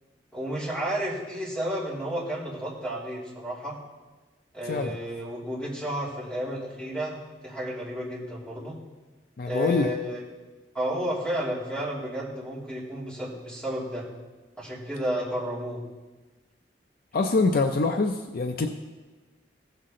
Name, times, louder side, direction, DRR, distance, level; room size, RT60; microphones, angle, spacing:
voice 1, 0.3-3.8 4.5-7.2 7.4-8.8 9.4-10.2 10.7-14.1 14.6-15.8, equal, 5° left, -8 dB, 2.8 m, -32 dB
voice 2, 4.6-5.0 9.4-9.9 17.1-18.7, left 3 dB, 55° left, 6 dB, 0.5 m, -24 dB
15.0 x 5.9 x 3.7 m, 1.2 s
head